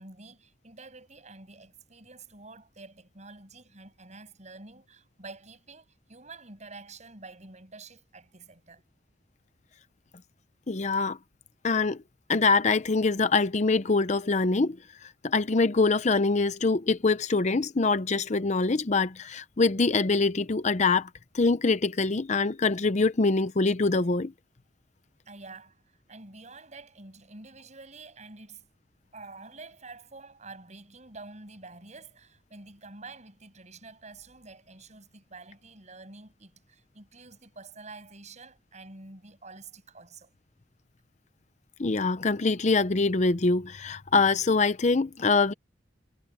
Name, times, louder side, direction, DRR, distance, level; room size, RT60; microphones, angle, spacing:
voice 1, 0.0-8.8 25.3-28.7 29.1-40.3, right 3 dB, 40° right, 7.7 m, -48 dB
voice 2, 10.7-11.2 11.6-12.0 12.3-14.8 15.0-21.1 21.3-24.3 41.8-45.5, left 3 dB, 40° left, 0.7 m, -24 dB
head